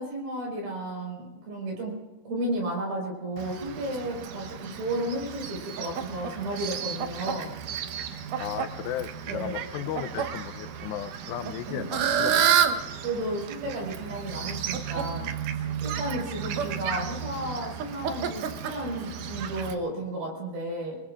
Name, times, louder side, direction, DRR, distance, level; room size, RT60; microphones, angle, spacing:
voice 1, 0.0-1.9 2.3-7.5 9.3-9.6 11.7-11.9 13.0-21.0, right 1 dB, 65° right, 0 dB, 6.9 m, -33 dB
Fowl, 3.4-19.7, right 8 dB, 85° right, 1.8 m, -31 dB
voice 2, 8.4-12.6, left 11 dB, 80° left, 11 dB, 2.6 m, -35 dB
27.5 x 21.5 x 2.5 m, 1.2 s
omnidirectional pair, 5.3 m